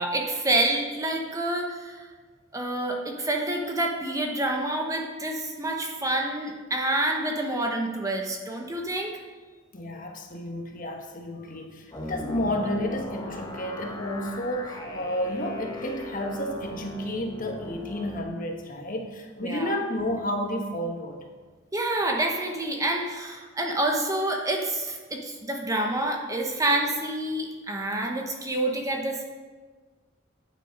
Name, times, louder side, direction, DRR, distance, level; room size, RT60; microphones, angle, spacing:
voice 1, 0.0-2.0 2.5-9.1 19.4-19.7 21.7-29.2, right 1 dB, 15° right, 1 dB, 0.9 m, -28 dB
voice 2, 9.7-21.2, left 1 dB, 45° left, 3 dB, 1.2 m, -31 dB
sound 1, 11.9-18.2, left 1 dB, 20° left, 1.1 m, -39 dB
9.1 x 7.6 x 5.2 m, 1.4 s
head